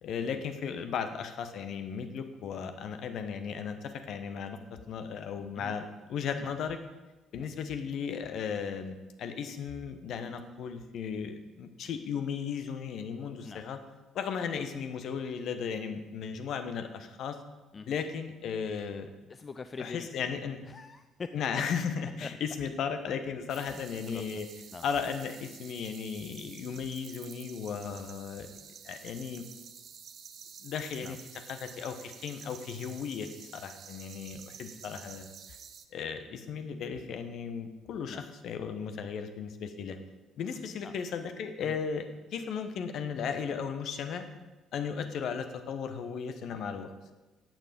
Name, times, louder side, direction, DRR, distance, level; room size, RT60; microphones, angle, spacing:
voice 1, 0.0-6.8 7.3-13.8 14.1-17.4 17.9-19.1 19.8-20.7 21.3-24.5 24.8-28.5 28.8-29.4 30.6-35.3 35.9-40.0 40.4-44.2 44.7-46.9, left 6 dB, 55° left, 8 dB, 1.2 m, -36 dB
voice 2, 19.3-20.1 20.6-21.4 22.2-22.3 23.5-24.4 24.7-24.8 31.0-31.2 38.0-38.2 40.8-40.9 41.7-41.8, left 4 dB, 30° left, 11 dB, 0.5 m, -44 dB
sound 1, 23.5-35.9, right 7 dB, 45° right, 1.0 m, -50 dB
14.0 x 9.2 x 5.3 m, 1.1 s
figure-of-eight pair, 45°, 0 cm